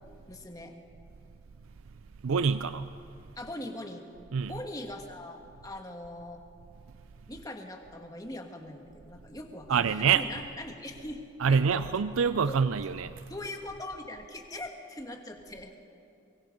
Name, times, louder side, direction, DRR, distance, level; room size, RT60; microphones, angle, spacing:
voice 1, 0.3-0.8 3.4-4.0 4.5-6.4 7.3-11.2 11.5-11.9 12.5-12.6 13.3-15.7, left 1 dB, 20° left, 4 dB, 1.5 m, -41 dB
voice 2, 2.2-2.9 4.3-4.5 9.7-10.2 11.4-13.2, right 6 dB, 90° right, 13 dB, 0.5 m, -26 dB
24.5 x 23.0 x 5.2 m, 2.6 s
head